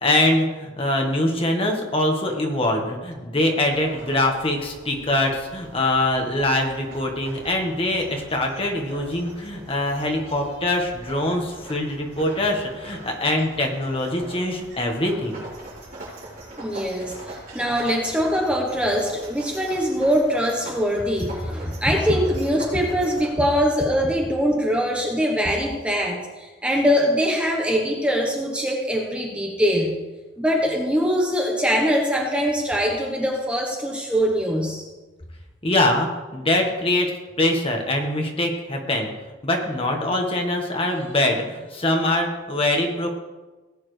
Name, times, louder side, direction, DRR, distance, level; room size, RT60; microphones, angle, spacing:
voice 1, 0.0-15.4 35.6-37.1 37.4-39.1 39.4-43.1, left 1 dB, 30° left, 2 dB, 1.5 m, -23 dB
sound 1, 3.7-23.3, right 1 dB, 45° right, 4.2 m, -42 dB
voice 2, 16.6-30.0 30.4-34.8, equal, 5° right, 0 dB, 1.1 m, -23 dB
17.5 x 8.6 x 3.3 m, 1.2 s
head